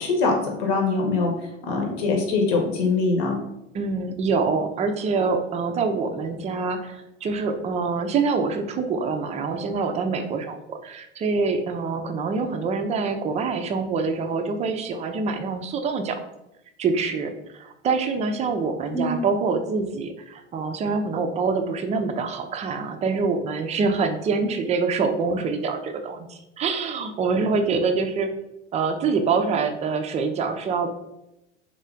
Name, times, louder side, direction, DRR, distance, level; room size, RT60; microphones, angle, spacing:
voice 1, 0.0-1.3 1.7-3.3 18.9-19.2, left 3 dB, 55° left, 1 dB, 1.1 m, -23 dB
voice 2, 3.7-16.2 16.8-28.3 28.7-30.9, right 4 dB, 20° right, 6 dB, 0.4 m, -25 dB
3.7 x 3.1 x 3.7 m, 0.89 s
figure-of-eight pair, 80°, 36 cm